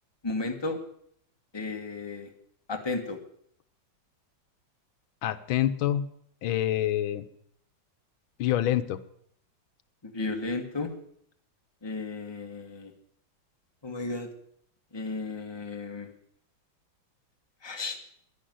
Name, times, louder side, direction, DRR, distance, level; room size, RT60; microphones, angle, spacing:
voice 1, 0.2-0.8 1.5-2.3 2.7-3.2 10.0-10.9 11.8-12.9 13.8-14.3 14.9-16.1 17.6-18.0, left 3 dB, 15° left, 3 dB, 1.5 m, -34 dB
voice 2, 5.2-6.1 6.4-7.3 8.4-9.0, left 12 dB, 90° left, 13 dB, 1.6 m, -26 dB
11.0 x 10.0 x 9.3 m, 0.67 s
omnidirectional pair, 2.2 m